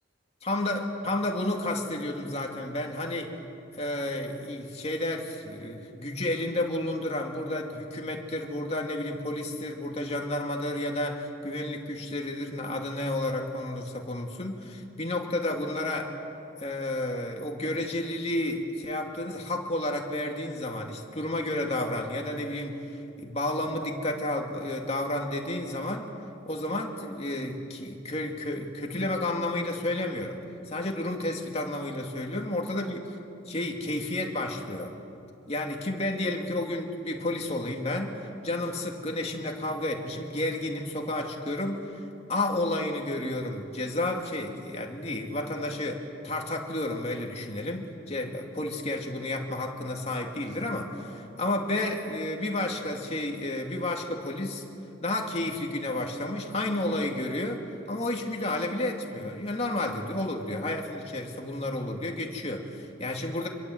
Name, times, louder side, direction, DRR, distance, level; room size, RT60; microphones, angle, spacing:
voice 1, 0.4-3.3 3.7-16.1 16.6-26.1 26.5-30.4 30.7-33.1 33.5-34.9 35.5-41.9 42.3-54.6 55.0-63.5, left 1 dB, 35° left, 1 dB, 2.6 m, -31 dB
27.0 x 22.5 x 8.0 m, 2.6 s
head